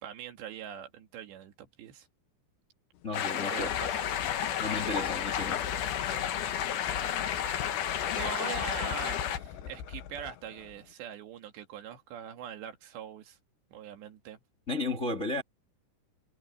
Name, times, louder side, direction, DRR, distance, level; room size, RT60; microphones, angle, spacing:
voice 1, 0.0-2.1 3.5-4.0 7.3-13.4 13.7-14.4, right 9 dB, 75° right, 4.1 m, -43 dB
sound 1, 3.0-10.9, left 9 dB, 75° left, 3.6 m, -42 dB
voice 2, 3.0-3.8 4.6-5.6 14.7-15.4, left 2 dB, 25° left, 1.6 m, -33 dB
sound 2, 3.1-9.4, left 9 dB, 60° left, 2.4 m, -32 dB
omnidirectional pair, 5.1 m